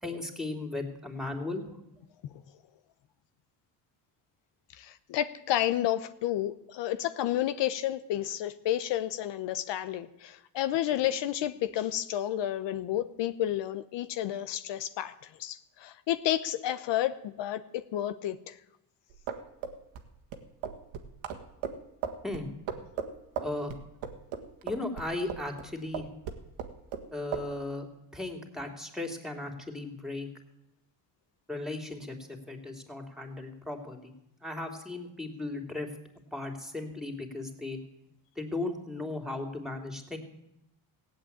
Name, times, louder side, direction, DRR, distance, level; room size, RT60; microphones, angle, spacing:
voice 1, 0.0-1.8 22.2-22.5 23.4-23.7 24.6-26.1 27.1-27.9 28.1-30.3 31.5-34.1 34.4-35.9 36.3-37.8 38.4-40.2, left 2 dB, ahead, 4 dB, 3.0 m, -36 dB
voice 2, 4.7-18.6, left 12 dB, 75° left, 12 dB, 0.9 m, -31 dB
sound 1, 19.1-25.7 25.9-27.1 27.3-27.5, right 7 dB, 85° right, 1.7 m, -37 dB
16.5 x 8.4 x 8.7 m, 0.85 s
cardioid pair, 85°, 44 cm